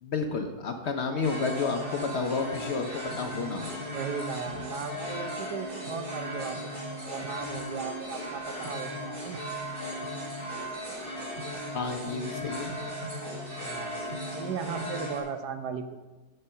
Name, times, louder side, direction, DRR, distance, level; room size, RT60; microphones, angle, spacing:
voice 1, 0.0-3.8 11.7-12.7, left 4 dB, 55° left, 5 dB, 0.8 m, -31 dB
sound 1, 1.2-15.2, equal, 45° right, 3.3 m, -36 dB
voice 2, 3.9-9.4 13.6-14.0 14.3-16.0, right 6 dB, 90° right, 8 dB, 1.4 m, -37 dB
7.7 x 6.6 x 5.5 m, 1.1 s
omnidirectional pair, 1.7 m